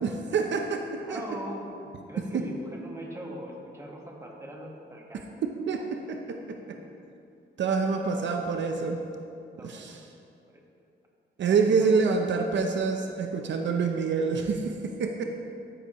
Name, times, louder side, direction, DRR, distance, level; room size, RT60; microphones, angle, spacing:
voice 1, 0.0-1.2 5.4-6.6 7.6-9.0 9.6-10.0 11.4-15.2, right 5 dB, 70° right, 4 dB, 0.7 m, -27 dB
voice 2, 1.0-1.6 2.1-5.3 6.7-6.8 8.1-8.3 9.6-9.7 11.7-12.0, right 1 dB, 15° right, -1 dB, 1.4 m, -40 dB
12.5 x 10.0 x 3.0 m, 2.6 s
wide cardioid pair, 140°, 20 cm